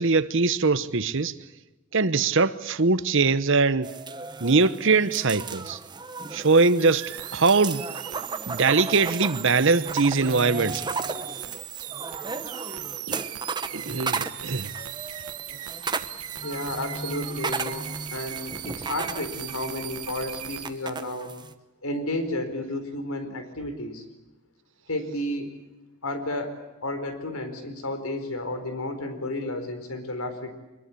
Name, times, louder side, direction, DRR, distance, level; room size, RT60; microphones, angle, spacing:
voice 1, 0.0-1.3 1.9-3.9 4.4-5.8 6.3-7.8 8.5-10.9 13.1-13.2 13.7-14.7, right 4 dB, 60° right, 1.0 m, -22 dB
sound 1, 3.8-21.5, right 4 dB, 20° right, 1.0 m, -35 dB
sound 2, 6.8-20.7, right 12 dB, 90° right, 1.5 m, -38 dB
voice 2, 16.4-21.3 21.8-24.0 24.9-25.6 26.0-30.5, left 1 dB, 80° left, 4.4 m, -32 dB
24.5 x 22.0 x 8.5 m
head